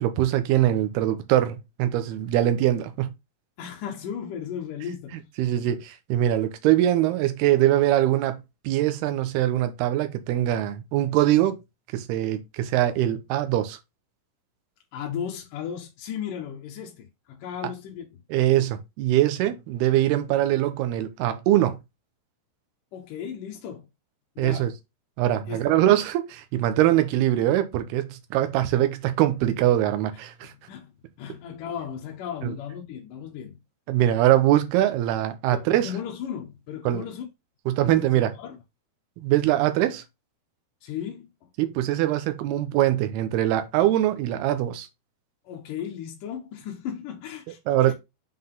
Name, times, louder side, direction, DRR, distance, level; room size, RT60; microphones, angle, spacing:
voice 1, 0.0-3.1 5.4-11.6 11.9-13.8 18.3-21.8 24.4-24.7 25.2-30.5 32.4-32.5 33.9-35.9 36.9-37.1 37.7-38.3 39.2-40.0 41.6-44.9 47.7-47.9, right 13 dB, 85° right, 2.8 m, -22 dB
voice 2, 3.6-5.2 14.9-18.1 22.9-23.9 24.4-24.7 25.5-26.0 30.5-30.9 31.2-33.6 35.5-37.3 37.8-38.1 38.4-38.5 40.8-41.5 45.4-47.6 47.9-48.0, left 8 dB, 70° left, 2.3 m, -35 dB
7.6 x 3.9 x 3.7 m
omnidirectional pair, 4.6 m